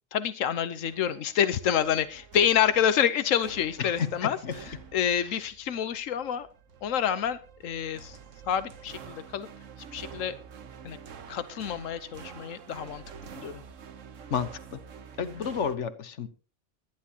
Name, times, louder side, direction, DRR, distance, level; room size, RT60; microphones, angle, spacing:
voice 1, 0.1-6.5 6.8-8.2 8.5-9.5 9.9-10.3 10.8-11.0 11.3-13.6 15.2-15.5, left 9 dB, 90° left, 13 dB, 1.2 m, -28 dB
sound 1, 0.8-15.8, right 6 dB, 80° right, 1.4 m, -48 dB
voice 2, 3.8-4.5 5.2-5.3 14.3-14.8 15.2-16.3, left 7 dB, 70° left, 12 dB, 1.5 m, -31 dB
21.5 x 10.5 x 2.9 m, 0.34 s
omnidirectional pair, 1.3 m